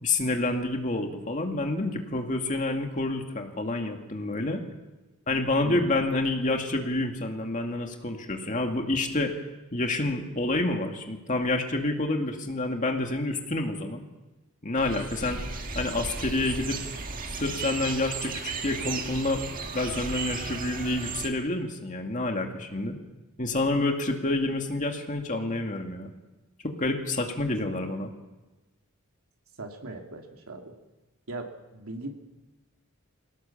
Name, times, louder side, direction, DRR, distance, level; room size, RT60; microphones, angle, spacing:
voice 1, 0.0-4.6 5.3-9.3 9.7-14.0 14.6-15.4 15.7-16.8 17.4-19.4 19.7-22.9 23.4-26.1 26.6-28.1, left 2 dB, 35° left, 3 dB, 2.2 m, -28 dB
voice 2, 5.6-6.0 29.6-30.7 31.3-32.2, right 2 dB, 80° right, 2 dB, 2.8 m, -39 dB
sound 1, 14.8-21.3, right 4 dB, 40° right, 1.8 m, -35 dB
21.5 x 18.0 x 7.2 m, 1.1 s
head